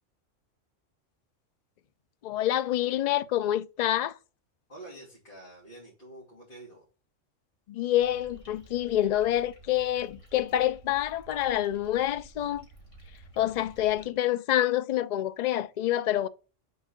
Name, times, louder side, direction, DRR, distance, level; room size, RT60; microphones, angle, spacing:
voice 1, 2.2-4.1 7.7-12.6 13.4-16.3, left 12 dB, 65° left, 0.4 m, -27 dB
voice 2, 4.7-6.9, right 2 dB, 45° left, 3.0 m, -47 dB
sound 1, 8.0-14.1, right 2 dB, 25° left, 3.2 m, -52 dB
7.0 x 4.5 x 5.1 m
omnidirectional pair, 1.3 m